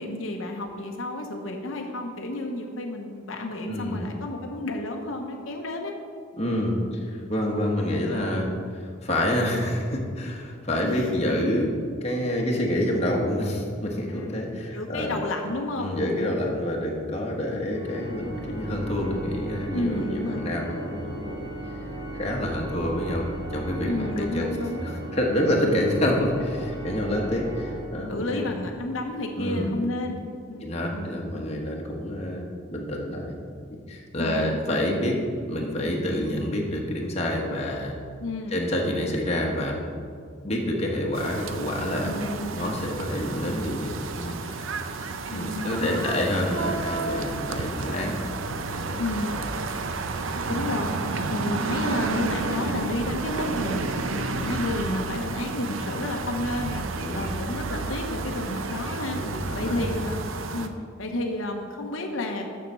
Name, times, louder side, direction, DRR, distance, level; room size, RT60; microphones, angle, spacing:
voice 1, 0.0-5.9 10.8-11.2 14.1-14.3 14.7-16.0 17.5-17.7 19.7-20.5 23.9-24.8 25.5-25.8 28.1-31.2 34.2-34.6 38.2-38.6 42.0-42.6 45.3-46.2 49.0-49.3 50.5-50.9 51.2-53.8 54.1-56.8 57.1-59.2 59.5-60.2 60.5-60.7 61.0-62.5, left 2 dB, 80° left, 2 dB, 0.9 m, -31 dB
voice 2, 3.7-4.0 6.3-11.7 12.0-15.2 15.8-21.5 22.1-24.5 24.8-28.5 29.4-29.7 30.6-33.4 33.9-35.2 35.5-37.9 38.5-39.8 40.4-42.1 42.5-44.7 45.3-48.2 48.5-49.0 49.4-49.5 50.5-50.6 56.9-57.3 59.1-59.9, left 1 dB, 30° left, -1 dB, 1.2 m, -28 dB
Organ, 17.7-28.5, right 1 dB, 30° right, 1.8 m, -37 dB
sound 1, 41.1-60.7, right 3 dB, 80° right, 0.6 m, -31 dB
7.0 x 6.5 x 6.7 m, 2.2 s
head